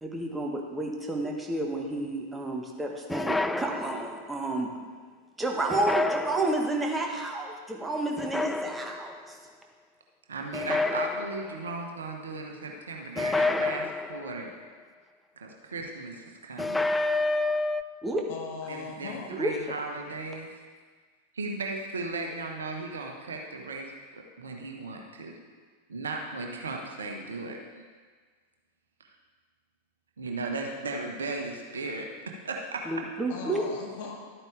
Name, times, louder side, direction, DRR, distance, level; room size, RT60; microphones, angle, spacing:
voice 1, 0.0-4.7 5.4-9.1 18.0-18.2 19.4-19.5 32.9-33.6, right 2 dB, 10° right, 1 dB, 1.4 m, -30 dB
sound 1, 3.1-4.3 5.7-6.9 8.2-9.2 10.5-11.7 13.2-14.5 16.6-17.8, left 2 dB, 10° left, 0.3 m, -29 dB
voice 2, 10.3-14.5 15.4-16.9 18.7-20.6 21.3-25.3 25.9-27.8 30.2-32.8, right 3 dB, 70° right, 2 dB, 1.3 m, -36 dB
voice 3, 18.3-19.3 33.3-34.2, left 5 dB, 50° left, 0 dB, 2.0 m, -39 dB
12.5 x 8.9 x 3.4 m, 1.5 s
figure-of-eight pair, 90°, 0 cm